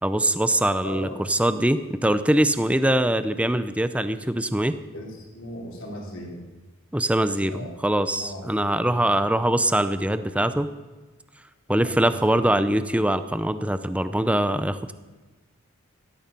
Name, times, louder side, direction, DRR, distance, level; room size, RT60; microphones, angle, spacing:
voice 1, 0.0-4.8 6.9-10.7 11.7-14.9, right 1 dB, 5° right, 11 dB, 0.6 m, -23 dB
voice 2, 0.8-1.2 4.9-6.4 7.5-7.7 8.2-9.6 11.7-12.6, left 1 dB, 65° left, -1 dB, 3.8 m, -39 dB
17.0 x 13.0 x 5.4 m, 1.2 s
head